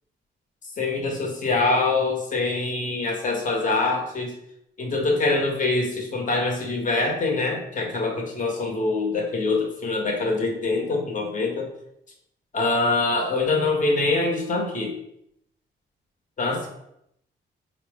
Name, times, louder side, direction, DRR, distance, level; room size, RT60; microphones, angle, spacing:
voice 1, 0.8-4.3 4.8-11.7 12.5-14.9 16.4-16.7, left 3 dB, 45° left, 1 dB, 0.9 m, -24 dB
4.0 x 2.0 x 3.4 m, 0.77 s
cardioid pair, 95°, 19 cm